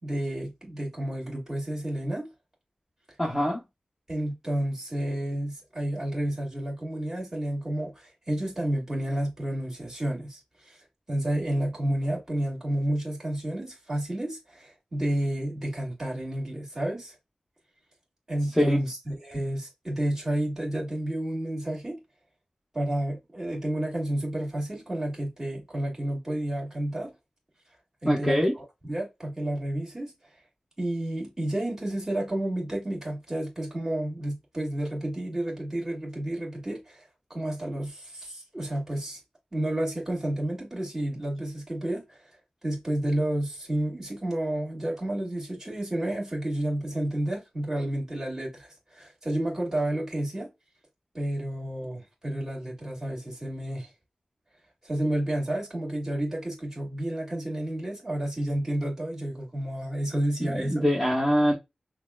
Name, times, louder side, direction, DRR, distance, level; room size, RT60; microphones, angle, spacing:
voice 1, 0.0-2.3 4.1-10.4 10.7-10.8 11.1-17.1 18.3-22.0 22.7-27.1 28.0-30.1 30.8-37.0 37.3-39.2 39.5-42.2 42.6-50.5 51.1-53.9 54.8-60.8, right 1 dB, 20° right, 1.9 m, -30 dB
voice 2, 3.2-3.6 18.6-18.8 28.0-28.5 60.4-61.5, equal, ahead, 0.8 m, -23 dB
5.9 x 2.3 x 2.2 m
wide cardioid pair, 105°, 2 cm